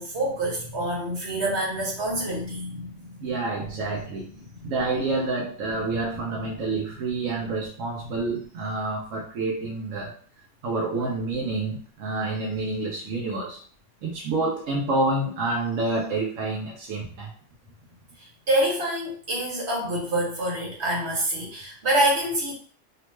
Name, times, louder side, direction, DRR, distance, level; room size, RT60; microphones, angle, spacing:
voice 1, 0.0-3.8 18.2-22.5, right 1 dB, 60° right, -3 dB, 1.3 m, -27 dB
voice 2, 3.2-4.3 4.6-10.2 10.6-13.6 14.0-17.3, right 2 dB, 90° right, -2 dB, 1.0 m, -28 dB
2.8 x 2.1 x 3.1 m, 0.43 s
omnidirectional pair, 1.3 m